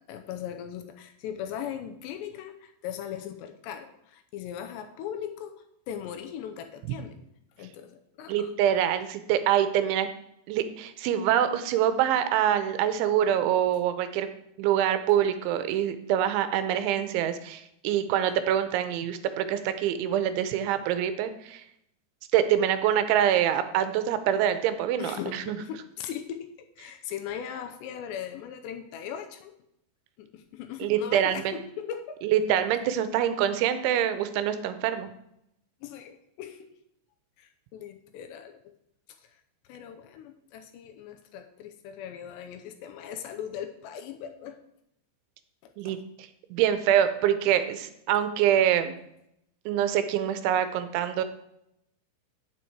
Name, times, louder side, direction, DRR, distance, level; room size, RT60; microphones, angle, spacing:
voice 1, 0.0-7.2 7.6-8.5 25.0-26.5 26.8-29.6 30.2-32.2 35.8-36.8 37.4-38.6 39.2-39.3 39.7-44.6 45.6-46.0, left 9 dB, 80° left, 6 dB, 2.8 m, -39 dB
voice 2, 8.3-10.1 10.5-14.3 14.6-21.6 22.3-25.6 30.8-31.5 32.2-35.1 45.8-46.0 46.5-48.9 49.7-51.2, right 10 dB, 85° right, 10 dB, 3.1 m, -25 dB
9.1 x 7.6 x 4.6 m, 0.78 s
omnidirectional pair, 5.3 m